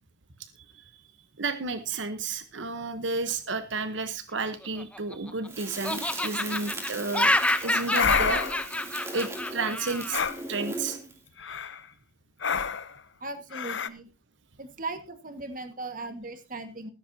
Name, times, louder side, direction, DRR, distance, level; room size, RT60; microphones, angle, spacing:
voice 1, 1.4-7.3 7.6-8.4 9.1-10.2 10.5-11.0, right 3 dB, 85° right, 10 dB, 1.1 m, -32 dB
Laughter, 4.6-5.5 5.8-10.2, left 1 dB, 5° left, 0.7 m, -28 dB
Crackle, 5.5-11.2, right 2 dB, 15° right, 2.8 m, -38 dB
sound 1, 7.9-8.6 10.1-10.4 11.4-11.8 12.4-12.9 13.5-13.9, left 6 dB, 85° left, 0.8 m, -27 dB
voice 2, 13.2-14.1 14.6-16.9, right 2 dB, 45° right, 8 dB, 1.7 m, -38 dB
15.0 x 13.5 x 2.8 m, 0.26 s
head